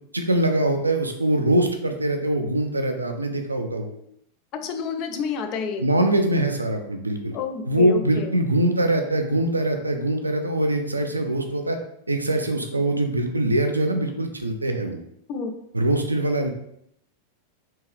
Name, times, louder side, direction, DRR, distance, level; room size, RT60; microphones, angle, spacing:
voice 1, 0.1-3.9 5.8-7.3 7.7-11.8 12.1-15.0 15.7-16.5, right 1 dB, 80° right, 5 dB, 0.4 m, -23 dB
voice 2, 4.5-5.8 7.3-8.3 15.3-15.5, left 5 dB, 40° left, 6 dB, 0.5 m, -29 dB
3.5 x 2.6 x 3.2 m, 0.74 s
figure-of-eight pair, 90°, 0 cm